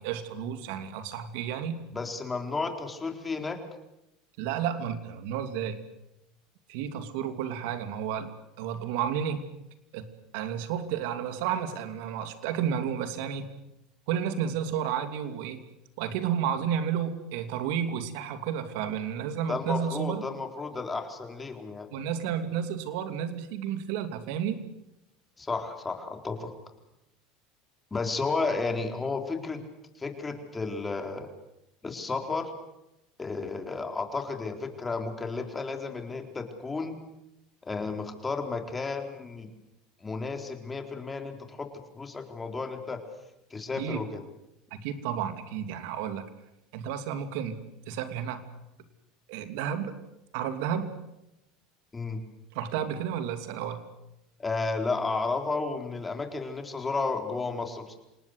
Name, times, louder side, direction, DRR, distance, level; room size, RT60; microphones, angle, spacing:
voice 1, 0.0-1.9 4.4-5.8 6.7-8.3 8.6-9.5 9.9-13.5 14.1-15.6 16.0-20.2 21.9-24.6 43.8-44.0 44.7-46.3 46.7-48.4 49.3-50.0 50.3-50.9 52.5-53.9, right 8 dB, 75° right, 9 dB, 2.8 m, -32 dB
voice 2, 1.9-3.6 19.5-21.9 25.4-26.5 27.9-29.6 30.0-31.3 31.8-32.5 33.2-37.0 37.6-39.5 40.0-41.7 41.9-43.0 43.5-44.2 51.9-52.2 54.4-58.0, left 3 dB, 20° left, 5 dB, 4.2 m, -32 dB
27.5 x 19.0 x 8.2 m, 0.88 s
supercardioid pair, 105°, 0 cm